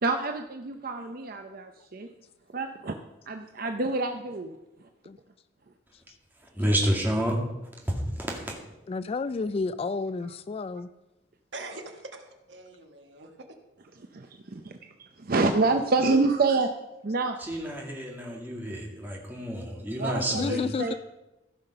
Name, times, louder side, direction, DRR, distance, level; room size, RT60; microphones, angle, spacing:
voice 1, 0.0-2.1 2.5-3.0 3.3-4.6 14.1-16.7 17.0-17.4 20.0-20.9, right 3 dB, 50° right, 0.6 m, -27 dB
voice 2, 6.6-7.4 7.8-8.5 17.4-20.6, right 1 dB, 10° right, 2.1 m, -29 dB
voice 3, 8.9-10.9 20.3-20.9, left 4 dB, 30° left, 0.3 m, -31 dB
voice 4, 11.5-13.5, right 2 dB, 75° right, 1.5 m, -43 dB
15.5 x 5.8 x 5.6 m
head